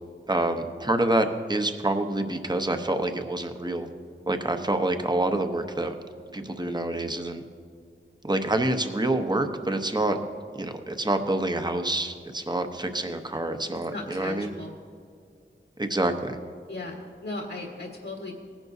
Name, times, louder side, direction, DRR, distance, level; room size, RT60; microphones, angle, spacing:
voice 1, 0.3-3.9 4.3-5.9 6.3-7.4 8.2-10.2 10.5-14.5 15.8-16.4, right 1 dB, 20° right, 6 dB, 0.9 m, -27 dB
voice 2, 13.9-14.7 16.7-17.0 17.2-18.3, left 2 dB, 75° left, -2 dB, 1.6 m, -36 dB
19.0 x 10.5 x 2.7 m, 2.2 s
wide cardioid pair, 60°, 21 cm